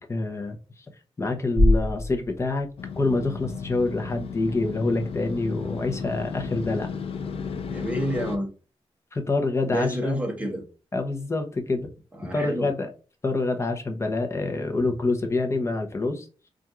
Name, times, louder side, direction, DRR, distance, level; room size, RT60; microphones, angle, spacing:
voice 1, 0.1-0.6 1.2-2.7 3.0-6.9 9.1-10.2 10.9-11.9 12.3-12.9 13.2-16.3, left 2 dB, 25° left, 4 dB, 0.8 m, -26 dB
sound 1, 1.6-3.6, left 1 dB, 55° right, 2.3 m, -24 dB
Motorcycle, 2.8-8.4, left 6 dB, 70° left, 0.6 m, -34 dB
voice 2, 7.7-8.5 9.7-10.6 12.1-12.7, equal, 15° right, 2 dB, 1.0 m, -28 dB
4.4 x 2.5 x 3.7 m, 0.36 s
wide cardioid pair, 140°, 10 cm